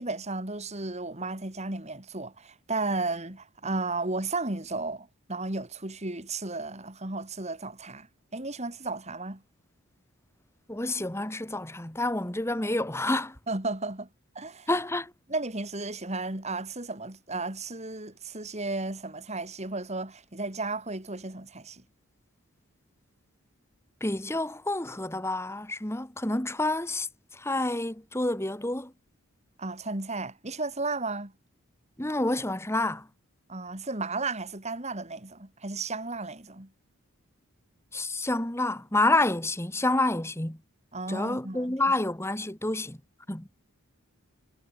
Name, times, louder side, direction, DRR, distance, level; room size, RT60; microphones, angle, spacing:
voice 1, 0.0-8.1 8.3-9.4 13.5-14.1 14.3-14.7 15.3-21.8 29.6-31.3 33.5-36.7 40.9-41.8, right 3 dB, 30° right, 2.8 m, -34 dB
voice 2, 10.7-13.3 14.7-15.1 24.0-27.1 27.3-28.9 32.0-33.0 37.9-40.6 41.1-43.0 43.3-43.5, left 2 dB, 10° left, 1.6 m, -28 dB
head